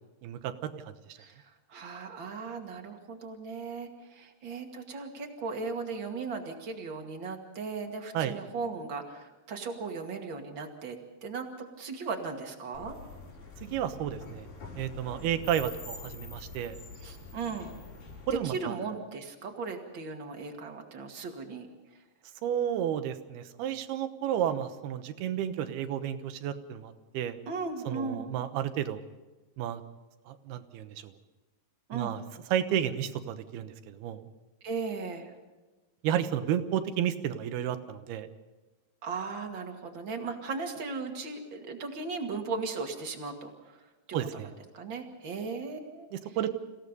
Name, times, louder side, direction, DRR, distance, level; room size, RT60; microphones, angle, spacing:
voice 1, 0.2-0.7 8.1-8.3 13.6-14.5 14.8-16.8 18.3-18.8 22.4-27.4 27.9-29.0 29.6-29.8 30.3-31.1 31.9-32.2 32.5-34.2 36.0-38.3 44.1-44.5 46.1-46.5, right 10 dB, 75° right, 9 dB, 3.0 m, -32 dB
voice 2, 1.2-13.0 17.0-17.7 18.3-21.7 27.5-28.3 31.9-32.1 34.6-35.3 39.0-43.8 44.1-46.4, right 4 dB, 35° right, 3 dB, 2.3 m, -37 dB
sound 1, 12.7-18.4, left 4 dB, 75° left, 6.6 m, -45 dB
29.5 x 16.5 x 5.4 m, 1.2 s
omnidirectional pair, 4.7 m